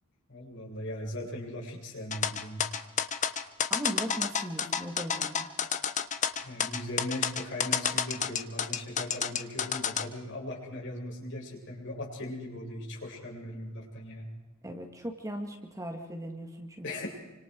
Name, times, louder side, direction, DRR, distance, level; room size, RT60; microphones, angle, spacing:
voice 1, 0.3-2.7 6.4-14.3 16.8-17.1, left 1 dB, 60° left, -2 dB, 7.7 m, -39 dB
sound 1, 2.1-10.0, left 7 dB, 35° left, 1.2 m, -30 dB
voice 2, 3.7-5.5 14.6-16.9, equal, 15° right, 3 dB, 2.4 m, -38 dB
29.0 x 26.0 x 4.8 m, 1.1 s
head